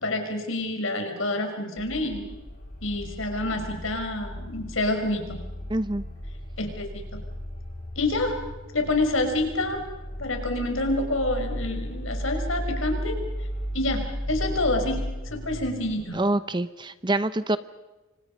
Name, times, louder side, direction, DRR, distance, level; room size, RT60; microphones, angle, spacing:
voice 1, 0.0-2.2 2.8-5.4 6.6-7.2 8.0-8.4 8.7-9.8 10.2-13.2 13.7-15.0 15.3-16.2, left 2 dB, 70° left, 5 dB, 5.5 m, -27 dB
sound 1, 1.8-16.0, equal, 45° left, 6.3 m, -35 dB
voice 2, 5.7-6.0 16.1-17.6, right 2 dB, 20° right, 13 dB, 0.8 m, -25 dB
28.5 x 25.5 x 5.4 m, 1.1 s
head